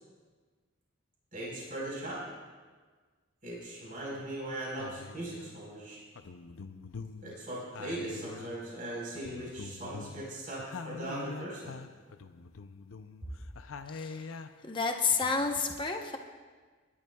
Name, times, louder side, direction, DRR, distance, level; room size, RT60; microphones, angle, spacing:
voice 1, 1.3-2.2 3.4-6.0 7.2-11.8 13.2-13.3, right 1 dB, 40° right, -5 dB, 4.3 m, -39 dB
sound 1, 4.1-4.4 4.8-5.6 6.2-8.8 9.2-14.7 15.1-15.6, left 4 dB, 80° left, 0.6 m, -45 dB
voice 2, 13.9-14.4 14.6-16.2, left 4 dB, 25° left, 3 dB, 0.9 m, -30 dB
29.5 x 11.0 x 2.3 m, 1.4 s
head